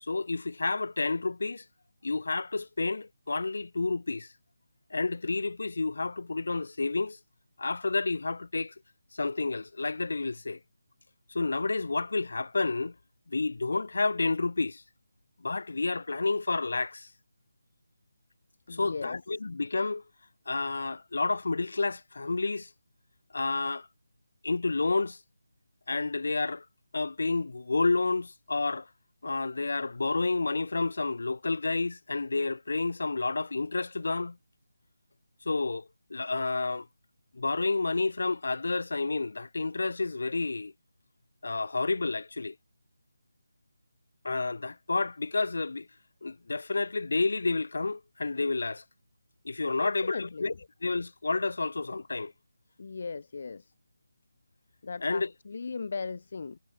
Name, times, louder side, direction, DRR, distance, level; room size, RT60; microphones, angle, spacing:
voice 1, 0.0-1.6 2.0-4.3 4.9-7.2 7.6-8.7 9.1-10.6 11.3-12.9 13.3-14.8 15.4-17.1 18.7-20.0 20.5-22.7 23.3-23.9 24.4-25.2 25.9-26.6 26.9-28.9 29.2-34.4 35.5-36.9 37.3-40.7 41.4-42.5 44.2-45.9 46.2-48.8 49.4-50.5 50.8-52.3 55.0-55.3, left 3 dB, 70° left, 0.7 m, -30 dB
voice 2, 18.7-19.2 49.8-50.6 52.8-53.7 54.8-56.6, left 4 dB, 50° left, 0.3 m, -37 dB
figure-of-eight pair, 170°, 0 cm